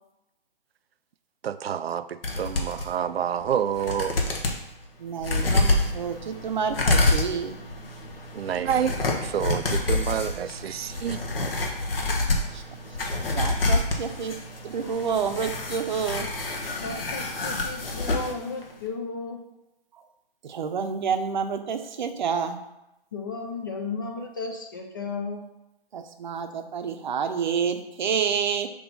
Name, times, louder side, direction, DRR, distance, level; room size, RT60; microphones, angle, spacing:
voice 1, 1.4-4.2 8.3-11.2, right 9 dB, 90° right, 0.5 m, -28 dB
sound 1, 2.2-2.9 3.4-3.5 3.8-4.6 5.2-18.3 18.6-18.7, left 2 dB, 70° left, 1.4 m, -27 dB
voice 2, 5.0-7.6 12.5-12.6 13.3-14.4 14.6-16.3 20.4-22.6 25.9-28.7, right 6 dB, 50° right, 0.7 m, -29 dB
voice 3, 16.8-19.4 23.1-25.4, left 4 dB, 20° left, 0.4 m, -34 dB
6.2 x 2.9 x 5.3 m
hypercardioid pair, 155°, 29 cm